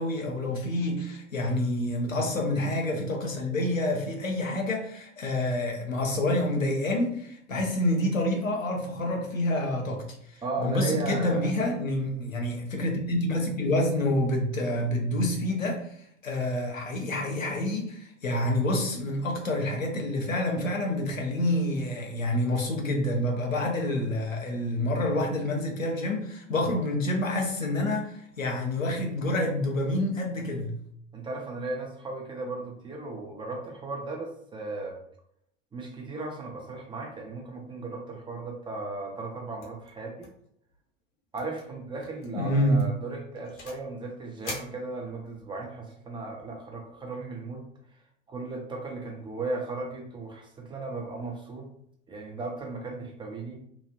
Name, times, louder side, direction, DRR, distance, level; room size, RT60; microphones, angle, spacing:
voice 1, 0.0-15.9 16.2-30.8 42.3-42.9, left 1 dB, 90° left, 1 dB, 0.8 m, -28 dB
voice 2, 10.4-11.5 31.1-35.0 35.7-40.3 41.3-47.7 48.3-51.7 52.1-53.6, right 3 dB, 15° right, 0 dB, 0.5 m, -36 dB
sound 1, 39.6-39.9 40.2-40.5 40.7-40.8 41.4-41.6 42.0-42.3 42.8-43.9 44.4-45.4, left 2 dB, 65° left, 1.1 m, -43 dB
3.0 x 2.4 x 2.7 m, 0.71 s
figure-of-eight pair, 85°, 38 cm